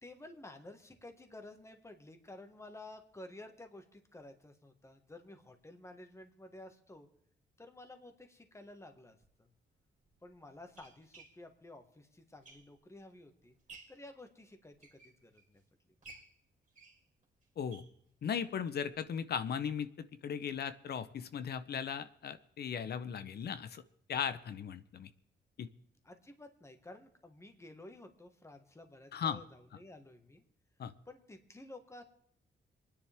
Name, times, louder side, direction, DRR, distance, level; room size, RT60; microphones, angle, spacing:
voice 1, 0.0-7.1 7.6-9.5 10.2-13.6 13.9-15.6 26.0-30.4 31.0-32.0, left 2 dB, 15° left, 5 dB, 1.8 m, -53 dB
sound 1, 9.2-9.3 10.1-13.0 13.4-14.1 14.6-15.6 16.0-18.6 18.9-19.0 19.3-19.4 19.8-19.9, right 3 dB, 45° right, 2.9 m, -58 dB
voice 2, 18.2-23.8 24.1-25.1 25.6-25.7 29.1-29.4 30.8-30.9, left 7 dB, 65° left, 14 dB, 0.9 m, -37 dB
26.5 x 10.0 x 3.6 m, 0.69 s
cardioid pair, 90°, 18 cm